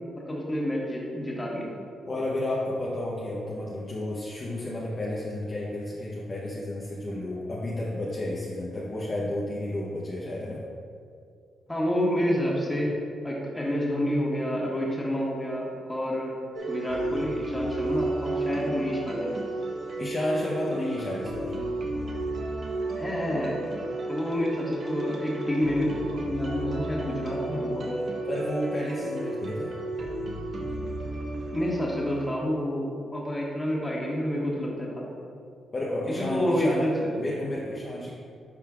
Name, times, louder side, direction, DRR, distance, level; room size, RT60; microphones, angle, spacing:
voice 1, 0.2-1.7 11.7-12.9 13.2-16.3 16.7-19.3 23.0-23.5 24.1-28.0 31.5-35.1 36.1-37.2, equal, 15° left, -4 dB, 1.5 m, -28 dB
voice 2, 2.1-10.6 20.0-21.5 28.2-29.7 35.7-36.8 37.2-38.1, left 1 dB, 35° left, -5 dB, 0.9 m, -31 dB
sound 1, 16.5-32.3, right 2 dB, 55° right, 1.2 m, -33 dB
10.5 x 5.4 x 2.4 m, 2.3 s
cardioid pair, 115°, 0 cm